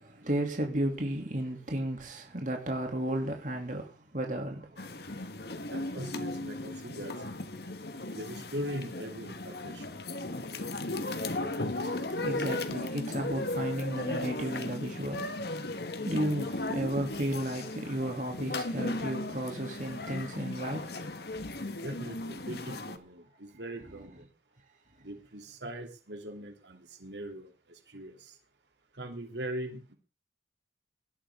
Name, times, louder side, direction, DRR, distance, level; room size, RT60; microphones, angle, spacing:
voice 1, 0.0-5.0 11.7-21.0 21.4-21.6, right 1 dB, 45° right, 2.9 m, -34 dB
sound 1, 4.8-23.0, left 2 dB, 65° left, 1.5 m, -36 dB
voice 2, 5.7-7.1 8.1-10.0 21.8-24.2 25.0-28.4 28.9-29.9, equal, 80° right, 3.2 m, -41 dB
18.5 x 13.0 x 3.8 m
head